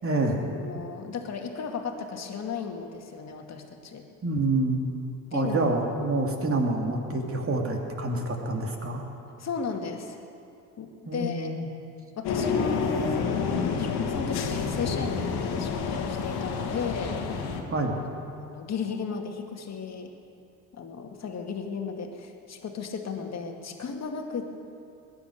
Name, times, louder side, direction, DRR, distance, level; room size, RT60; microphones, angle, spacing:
voice 1, 0.0-0.4 4.2-4.8 5.3-9.0 11.1-11.7 17.7-18.0, right 2 dB, 30° right, 2 dB, 2.7 m, -27 dB
voice 2, 0.6-4.0 5.3-5.6 9.4-10.2 10.8-11.5 12.2-17.2 18.4-20.1 20.7-24.4, left 5 dB, 35° left, 3 dB, 2.2 m, -35 dB
sound 1, 12.2-17.6, left 5 dB, 60° left, 2.1 m, -29 dB
20.5 x 10.5 x 6.7 m, 2.6 s
hypercardioid pair, 65°, 43 cm